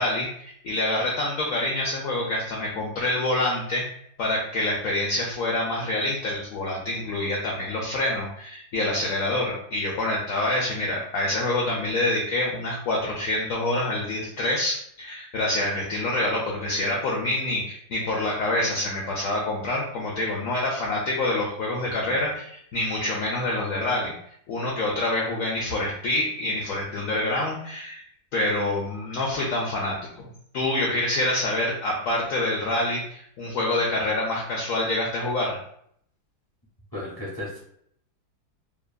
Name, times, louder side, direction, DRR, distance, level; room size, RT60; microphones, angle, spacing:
voice 1, 0.0-3.8 4.2-24.1 24.5-28.0 28.3-30.3 30.5-35.6, left 1 dB, 85° left, -2 dB, 0.7 m, -26 dB
voice 2, 36.9-37.6, left 1 dB, 35° left, -8 dB, 0.3 m, -35 dB
2.9 x 2.5 x 2.2 m, 0.67 s
omnidirectional pair, 2.0 m